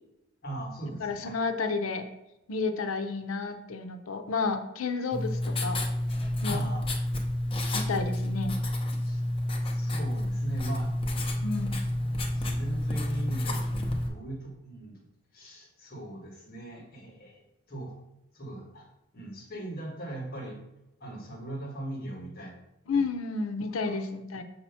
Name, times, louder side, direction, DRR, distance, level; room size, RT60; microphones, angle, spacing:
voice 1, 0.4-1.3 6.4-6.9 9.0-9.2 9.6-10.9 12.3-15.0 15.3-17.4 17.7-17.9 18.3-18.9 19.1-20.6 21.0-22.5 22.9-23.1 23.8-23.9, right 2 dB, 45° left, -2 dB, 1.3 m, -39 dB
voice 2, 1.0-2.0 2.5-5.8 6.4-6.6 7.7-8.6 11.4-11.8 22.9-24.4, left 4 dB, 85° left, 8 dB, 0.6 m, -31 dB
Writing, 5.1-14.1, left 1 dB, 25° left, 0.7 m, -30 dB
6.6 x 2.9 x 5.6 m, 0.92 s
head